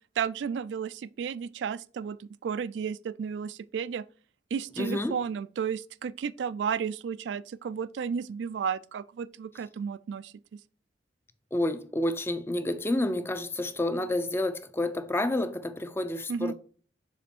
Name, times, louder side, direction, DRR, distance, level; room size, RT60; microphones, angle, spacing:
voice 1, 0.2-4.0 4.5-10.6 16.3-16.5, right 7 dB, 85° right, 0.3 m, -33 dB
voice 2, 4.8-5.2 11.5-16.5, left 1 dB, 15° left, 0.4 m, -29 dB
7.1 x 3.4 x 4.4 m
head